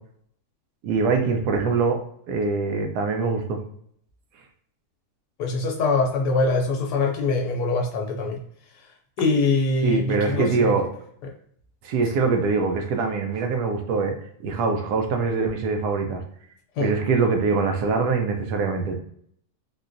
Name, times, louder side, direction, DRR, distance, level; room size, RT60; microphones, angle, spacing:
voice 1, 0.8-2.0 2.3-3.6 9.8-10.9 11.8-14.1 14.4-16.2 16.8-19.0, right 4 dB, 75° right, 4 dB, 1.1 m, -23 dB
voice 2, 5.4-8.4 8.7-8.9 9.2-10.7 11.2-11.3 16.8-16.9, left 3 dB, 80° left, 1 dB, 1.1 m, -23 dB
3.7 x 2.2 x 2.5 m, 0.66 s
omnidirectional pair, 1.8 m